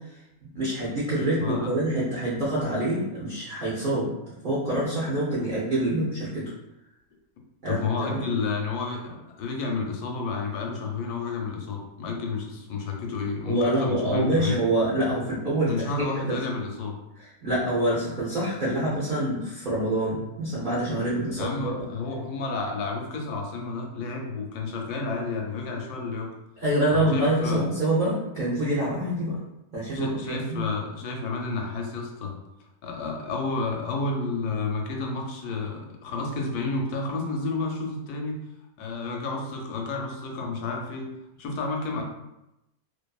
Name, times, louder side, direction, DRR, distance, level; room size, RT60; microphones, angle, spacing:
voice 1, 0.5-4.1 4.4-6.4 7.6-8.2 13.5-15.7 16.0-16.4 17.2-21.9 26.6-29.4 29.7-30.6, right 1 dB, 50° right, -9 dB, 0.6 m, -26 dB
voice 2, 1.4-1.7 7.6-14.6 15.7-17.0 21.4-26.3 26.9-27.6 29.9-32.4 32.8-38.4 38.8-41.1 41.4-42.0, left 3 dB, 85° left, 1 dB, 1.1 m, -31 dB
2.5 x 2.5 x 2.3 m, 0.91 s
omnidirectional pair, 1.6 m